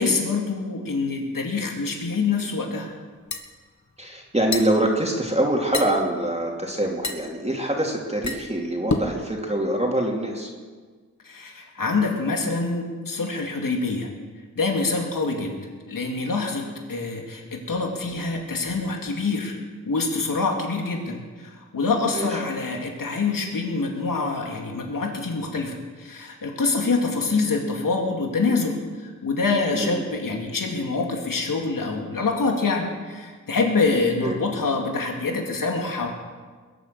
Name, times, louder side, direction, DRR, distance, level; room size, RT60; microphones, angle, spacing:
voice 1, 0.0-2.9 11.2-14.1 14.6-15.5 15.9-19.5 19.9-36.1, left 3 dB, 80° left, 1 dB, 2.4 m, -25 dB
sound 1, 2.9-9.3, left 3 dB, 60° left, 1.8 m, -31 dB
voice 2, 4.0-10.5 22.1-22.3 29.7-30.0 34.2-34.4, right 1 dB, 20° right, -1 dB, 2.8 m, -25 dB
21.5 x 8.9 x 6.7 m, 1.5 s
cardioid pair, 55°, 33 cm